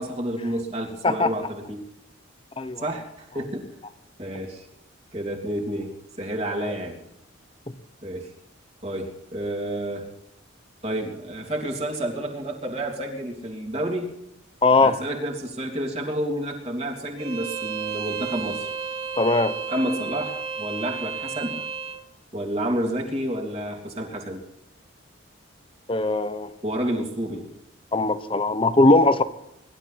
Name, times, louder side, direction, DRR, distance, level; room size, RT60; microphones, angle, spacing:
voice 1, 0.0-1.8 2.8-3.7 4.2-4.7 5.1-5.9 6.2-7.0 8.0-8.3 8.8-10.1 10.8-14.1 14.8-18.7 19.7-21.6 22.3-24.4 26.6-27.5, right 1 dB, 30° right, 3.1 m, -30 dB
voice 2, 14.6-15.0 19.2-19.6 25.9-26.5 27.9-29.2, left 2 dB, 25° left, 0.9 m, -19 dB
Bowed string instrument, 17.2-22.0, right 6 dB, 85° right, 2.0 m, -32 dB
24.0 x 12.5 x 4.2 m
head